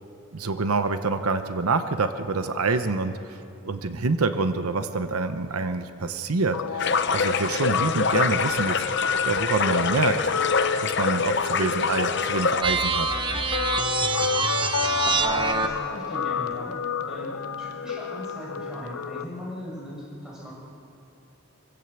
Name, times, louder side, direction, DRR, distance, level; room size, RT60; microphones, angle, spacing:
voice 1, 0.3-3.4 3.6-10.2 10.8-13.2, right 3 dB, 90° right, 9 dB, 0.9 m, -26 dB
Guitar, 6.5-19.2, left 6 dB, 90° left, 0.6 m, -30 dB
sound 1, 6.8-12.6, left 5 dB, 50° left, 0.8 m, -25 dB
sound 2, 12.6-15.9, right 4 dB, 20° right, 0.9 m, -26 dB
voice 2, 15.1-20.5, equal, 5° right, -6 dB, 6.2 m, -39 dB
25.5 x 14.5 x 8.2 m, 2.8 s
head